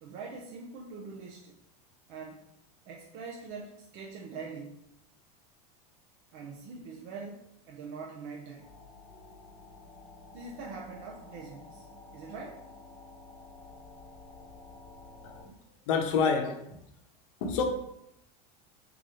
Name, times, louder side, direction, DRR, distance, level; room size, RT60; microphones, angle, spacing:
voice 1, 0.0-1.5 2.1-2.5 2.9-4.8 6.3-8.7 10.3-11.9 12.1-12.6, right 4 dB, 45° right, -2 dB, 0.6 m, -43 dB
sound 1, 8.6-15.5, left 3 dB, 5° left, 0.9 m, -51 dB
voice 2, 15.9-16.7 17.4-17.6, left 5 dB, 55° left, 3 dB, 0.8 m, -28 dB
3.8 x 2.9 x 4.8 m, 0.79 s
supercardioid pair, 175°, 20 cm